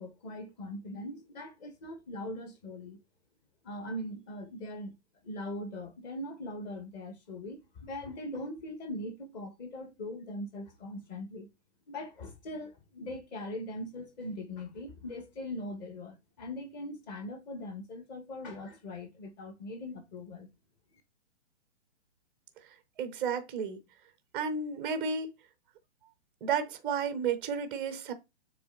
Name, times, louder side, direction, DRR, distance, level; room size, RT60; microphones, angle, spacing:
voice 1, 0.0-3.0 3.6-4.9 5.2-11.5 11.9-20.5, left 1 dB, 40° left, 1.7 m, -41 dB
voice 2, 23.0-23.8 24.3-25.3 26.4-28.1, right 6 dB, 5° right, 0.4 m, -32 dB
6.8 x 3.5 x 4.0 m
hypercardioid pair, 140°, 36 cm